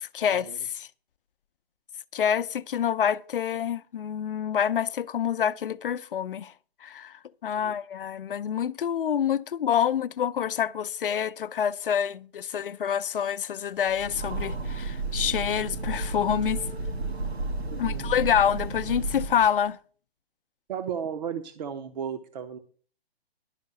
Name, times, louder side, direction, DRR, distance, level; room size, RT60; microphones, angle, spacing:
voice 1, 0.0-0.9 2.1-6.5 6.8-16.6 17.8-19.8, left 8 dB, 60° left, 0.6 m, -27 dB
Train, 13.9-19.6, right 3 dB, 90° right, 1.8 m, -32 dB
voice 2, 17.7-18.1 20.7-22.6, right 8 dB, 45° right, 0.9 m, -34 dB
11.5 x 5.3 x 8.0 m
figure-of-eight pair, 125°, 31 cm